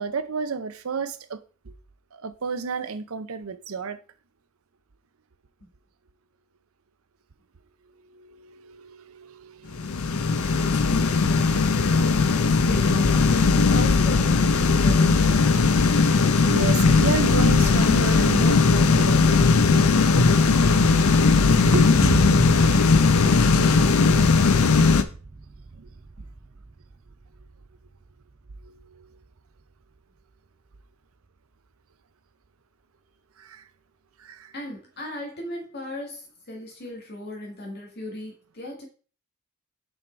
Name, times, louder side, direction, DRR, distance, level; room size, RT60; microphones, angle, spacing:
voice 1, 0.0-1.7 2.1-4.0 8.0-10.3 10.6-10.8 16.5-19.3 21.7-23.0 23.7-23.8 25.8-25.9 28.6-29.2 33.4-33.7 34.2-34.5, right 4 dB, 75° right, 0.7 m, -32 dB
sound 1, 9.7-25.0, left 4 dB, 85° left, 0.6 m, -18 dB
voice 2, 11.7-15.5 34.5-38.9, left 1 dB, 50° left, 1.9 m, -38 dB
sound 2, 22.0-29.4, right 3 dB, 25° right, 0.3 m, -33 dB
6.4 x 4.8 x 4.4 m
head